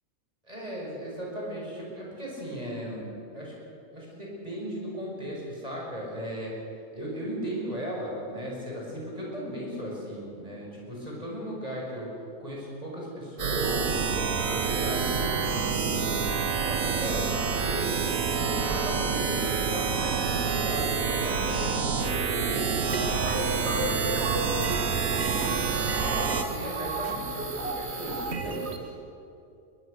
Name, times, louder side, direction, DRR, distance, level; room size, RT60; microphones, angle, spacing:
voice 1, 0.4-3.5 3.9-6.6 6.9-12.1 12.4-14.1 14.4-17.9 18.3-25.5 25.8-28.9, equal, 25° right, -3 dB, 5.8 m, -36 dB
sound 1, 13.4-26.4, right 5 dB, 65° right, 1.7 m, -28 dB
sound 2, 22.9-28.8, right 3 dB, 45° right, 1.9 m, -33 dB
22.5 x 21.0 x 6.6 m, 2.6 s
omnidirectional pair, 1.5 m